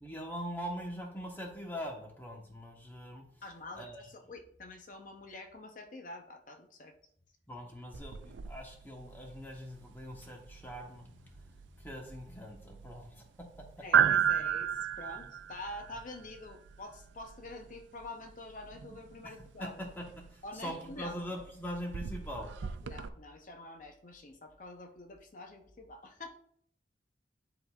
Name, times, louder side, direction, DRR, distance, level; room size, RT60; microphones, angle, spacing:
voice 1, 0.0-3.2 3.7-4.1 7.5-13.5 19.2-19.3 19.6-20.0 20.3-22.5, equal, 10° left, 1 dB, 1.0 m, -42 dB
voice 2, 3.4-6.9 13.8-19.8 20.4-21.2 22.8-26.3, left 2 dB, 45° left, 4 dB, 0.6 m, -47 dB
sound 1, 7.9-23.1, right 8 dB, 85° right, 0.4 m, -35 dB
10.5 x 3.8 x 2.3 m, 0.64 s
head